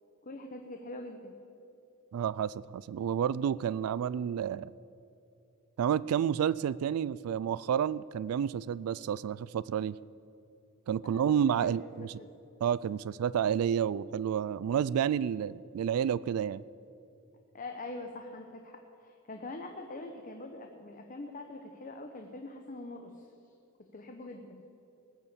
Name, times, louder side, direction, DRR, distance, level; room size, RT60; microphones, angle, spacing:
voice 1, 0.2-1.3 11.0-12.3 17.5-23.3 23.9-24.6, left 2 dB, 40° left, 4 dB, 0.9 m, -44 dB
voice 2, 2.1-4.7 5.8-10.0 10.9-12.2 12.6-16.6, right 8 dB, 80° right, 18 dB, 0.3 m, -30 dB
19.0 x 7.0 x 8.4 m, 2.8 s
head